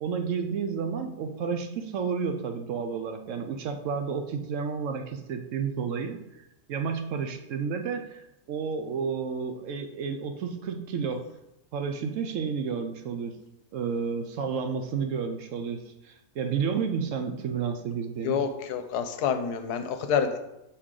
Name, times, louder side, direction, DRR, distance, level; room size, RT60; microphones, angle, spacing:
voice 1, 0.0-6.2 6.7-8.2 8.5-11.2 11.7-13.4 13.7-18.4, right 6 dB, 70° right, 6 dB, 0.7 m, -31 dB
voice 2, 18.2-20.4, left 7 dB, 75° left, 7 dB, 1.1 m, -28 dB
6.5 x 4.6 x 3.7 m, 0.90 s
omnidirectional pair, 1.8 m